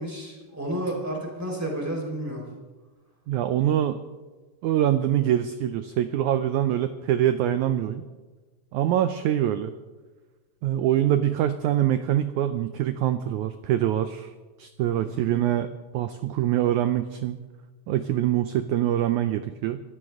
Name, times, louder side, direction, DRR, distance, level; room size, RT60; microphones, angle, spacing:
voice 1, 0.0-2.4 15.0-15.4, right 1 dB, 5° right, -2 dB, 4.0 m, -31 dB
voice 2, 3.3-4.0 4.6-8.0 8.7-9.7 10.6-14.3 14.6-17.4 17.9-19.8, right 11 dB, 85° right, 10 dB, 1.7 m, -24 dB
25.0 x 14.5 x 3.6 m, 1.3 s
omnidirectional pair, 4.2 m